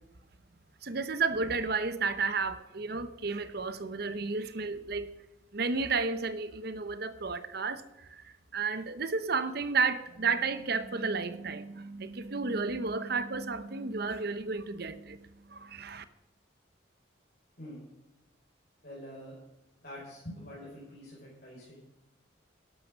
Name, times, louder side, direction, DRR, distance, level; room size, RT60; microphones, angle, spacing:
voice 1, 0.8-5.1 5.5-15.2 15.5-16.0, right 4 dB, 55° right, 13 dB, 0.8 m, -32 dB
voice 2, 18.8-19.3 19.8-21.8, equal, 50° left, -6 dB, 5.2 m, -45 dB
12.5 x 11.5 x 6.4 m, 0.97 s
head